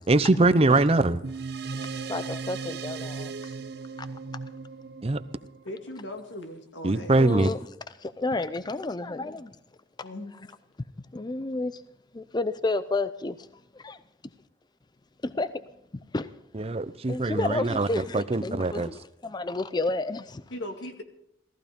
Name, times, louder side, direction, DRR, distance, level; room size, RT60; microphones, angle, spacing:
voice 1, 0.1-1.2 5.0-5.2 6.8-7.5 16.5-17.9 18.1-18.9, right 2 dB, 35° right, 0.7 m, -22 dB
sound 1, 1.2-6.0, right 4 dB, 60° right, 0.9 m, -37 dB
voice 2, 1.7-3.5 4.0-4.1 7.2-7.6 8.0-9.6 11.1-11.8 12.1-14.0 15.2-15.6 15.9-16.3 17.1-20.5, left 2 dB, 25° left, 0.5 m, -31 dB
voice 3, 5.6-7.1 10.0-10.3 20.5-21.0, left 1 dB, 90° left, 2.3 m, -38 dB
17.5 x 14.5 x 5.3 m
head